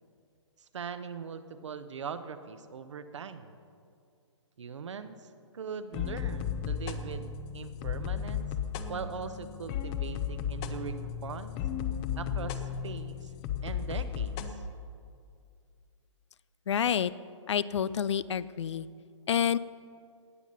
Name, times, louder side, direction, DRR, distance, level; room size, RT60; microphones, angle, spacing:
voice 1, 0.7-3.5 4.6-8.5 8.9-11.6 12.2-13.3 13.6-14.4, right 6 dB, 70° right, 10 dB, 1.0 m, -41 dB
sound 1, 5.9-14.5, left 8 dB, 25° left, 0.7 m, -34 dB
voice 2, 16.7-17.1 17.5-18.9 19.3-19.6, left 8 dB, 65° left, 18 dB, 0.5 m, -28 dB
18.5 x 7.3 x 5.6 m, 2.3 s
hypercardioid pair, 135°, 16 cm